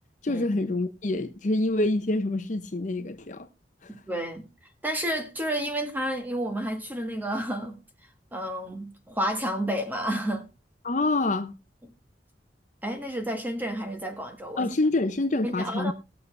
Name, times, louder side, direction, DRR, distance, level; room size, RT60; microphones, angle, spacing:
voice 1, 0.2-3.5 10.8-11.5 14.6-15.9, left 2 dB, 45° left, 0.7 m, -26 dB
voice 2, 3.9-4.5 4.8-7.8 8.3-10.5 12.8-14.7 15.4-15.9, equal, 10° right, 1.5 m, -30 dB
19.0 x 6.9 x 3.3 m
head